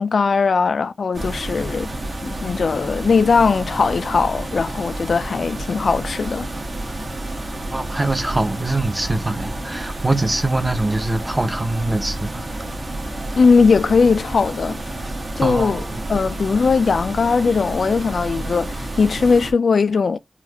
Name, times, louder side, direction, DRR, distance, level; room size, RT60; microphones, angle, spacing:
voice 1, 0.0-1.9 2.2-6.5 13.3-14.8 15.4-15.8 16.1-20.2, left 5 dB, 85° left, 0.3 m, -19 dB
sound 1, 1.1-19.5, right 1 dB, 55° right, 1.2 m, -30 dB
voice 2, 7.7-12.4 15.4-16.0, right 2 dB, 20° right, 0.7 m, -23 dB
4.3 x 2.4 x 2.8 m
wide cardioid pair, 110°, 0 cm